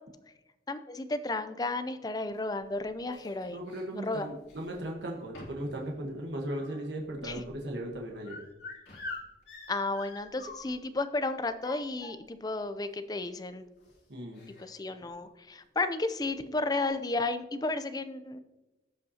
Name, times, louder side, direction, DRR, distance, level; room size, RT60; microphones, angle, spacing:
voice 1, 0.7-3.6 3.9-4.3 7.2-7.4 9.7-13.7 14.6-18.4, left 2 dB, 20° left, 10 dB, 0.5 m, -33 dB
sound 1, 2.4-3.8 4.4-4.9 5.3-5.7 6.0-10.9 11.5-12.5 13.3-13.4 13.8-13.9 14.3-14.8 15.0-15.3 16.2-16.3 16.6-16.9, left 2 dB, 75° left, 2.9 m, -46 dB
voice 2, 3.5-8.4 14.1-14.4, right 1 dB, 80° right, 0 dB, 1.2 m, -37 dB
15.5 x 5.4 x 2.8 m, 1.0 s
head